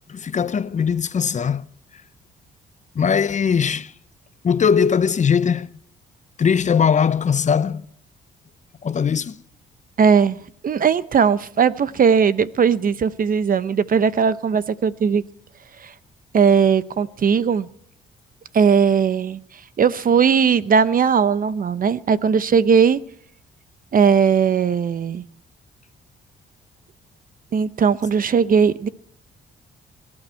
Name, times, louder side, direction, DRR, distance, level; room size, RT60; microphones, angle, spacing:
voice 1, 0.1-1.7 2.9-3.9 4.4-5.7 6.4-7.9 8.8-9.4, left 7 dB, 40° left, 0.7 m, -20 dB
voice 2, 10.0-10.4 10.6-15.2 15.8-15.9 16.3-17.7 18.5-19.4 19.8-23.0 23.9-25.2 27.5-28.9, right 6 dB, 45° right, 0.8 m, -18 dB
24.5 x 12.0 x 4.5 m
cardioid pair, 90°, 20 cm